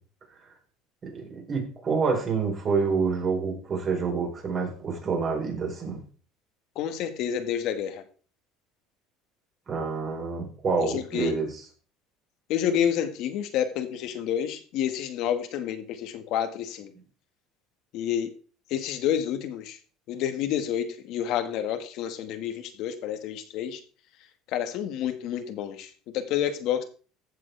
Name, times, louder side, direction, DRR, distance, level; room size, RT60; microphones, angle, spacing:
voice 1, 1.1-6.0 9.7-11.5, right 5 dB, 35° right, 1 dB, 4.7 m, -27 dB
voice 2, 6.8-8.0 10.8-11.3 12.5-16.9 17.9-18.3 18.7-19.8 20.1-23.8 24.5-26.8, left 9 dB, 60° left, 8 dB, 1.8 m, -29 dB
14.5 x 7.5 x 3.5 m, 0.39 s
cardioid pair, 130°, 0 cm